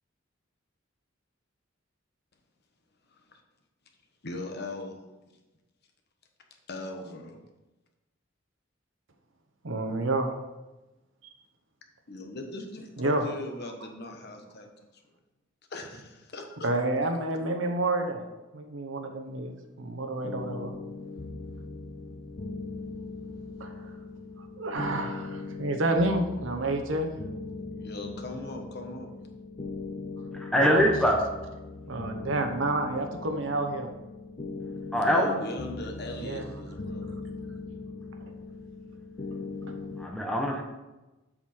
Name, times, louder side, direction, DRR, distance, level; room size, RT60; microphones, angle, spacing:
voice 1, 3.1-3.4 4.2-5.0 6.7-7.4 12.1-15.0 15.7-16.7 27.7-29.1 35.0-37.1, left 2 dB, 55° left, 4 dB, 1.2 m, -39 dB
voice 2, 9.6-10.3 13.0-13.2 16.6-18.2 18.5-19.5 19.8-20.7 23.6-23.9 24.6-27.1 30.7-30.9 31.9-33.9 36.2-36.5, right 2 dB, 75° right, 4 dB, 0.9 m, -29 dB
sound 1, 20.2-40.1, left 3 dB, 40° left, 0.6 m, -40 dB
voice 3, 30.3-31.2 34.9-35.4 40.0-40.6, equal, 5° left, 0 dB, 1.0 m, -23 dB
7.9 x 6.2 x 4.5 m, 1.1 s
head